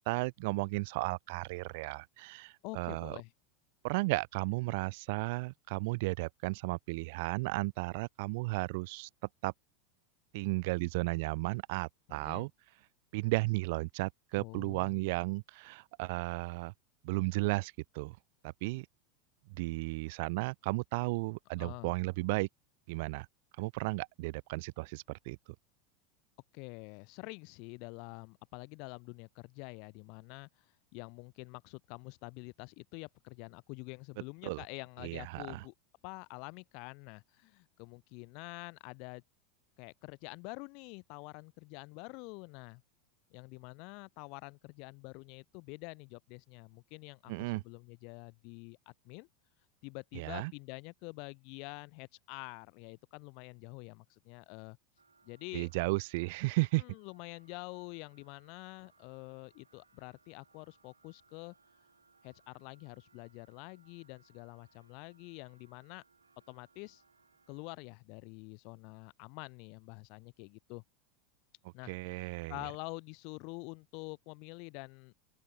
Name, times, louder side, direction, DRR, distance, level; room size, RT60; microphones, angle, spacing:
voice 1, 0.1-3.2 3.8-9.1 9.4-9.5 10.3-12.5 13.1-16.7 17.0-18.2 18.4-18.9 19.5-22.5 22.9-23.3 23.6-25.4 34.4-34.6 35.0-35.6 47.3-47.6 50.2-50.5 55.5-56.8 71.9-72.6, right 25 dB, 55° right, 0.5 m, -34 dB
voice 2, 2.6-3.3 12.1-12.5 14.4-15.0 21.6-21.9 26.5-30.7 30.9-35.7 36.0-39.2 39.8-42.8 43.3-49.3 49.8-54.8 55.2-55.7 56.8-61.5 62.2-66.0 66.5-67.0 67.5-70.8 71.7-75.1, left 33 dB, 50° left, 2.1 m, -47 dB
sound 1, 55.0-67.8, right 4 dB, 85° right, 2.7 m, -68 dB
open air
figure-of-eight pair, 85°, 0 cm